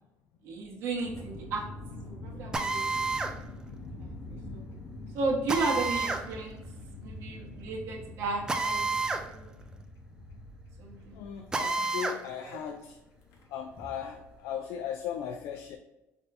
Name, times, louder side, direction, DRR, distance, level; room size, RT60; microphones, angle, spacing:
voice 1, 0.4-1.6 2.2-3.0 4.0-4.6 5.1-6.6 7.0-9.6 10.8-11.2, right 3 dB, 60° right, -3 dB, 1.4 m, -34 dB
sound 1, 1.0-14.4, left 2 dB, 55° left, 1.0 m, -45 dB
Drill, 2.5-3.4 5.5-6.3 8.5-9.3 9.6-9.7 11.5-12.2, right 3 dB, 15° right, 0.4 m, -29 dB
voice 2, 11.1-13.0 13.5-15.8, left 9 dB, 80° left, 5 dB, 0.4 m, -37 dB
5.4 x 3.4 x 2.7 m, 0.97 s
cardioid pair, 160°, 5 cm